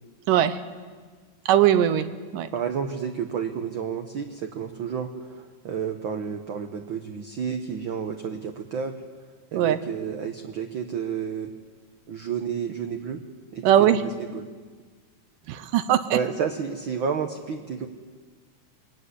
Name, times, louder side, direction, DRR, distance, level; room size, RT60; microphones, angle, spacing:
voice 1, 1.5-2.1 2.3-2.5 9.5-9.8 13.6-14.0 15.5-16.2, right 11 dB, 90° right, 12 dB, 2.6 m, -20 dB
voice 2, 2.5-9.0 9.5-11.5 12.1-13.2 13.5-14.5 16.1-17.9, right 7 dB, 70° right, 6 dB, 1.2 m, -31 dB
23.0 x 16.5 x 9.6 m, 1.5 s
omnidirectional pair, 3.7 m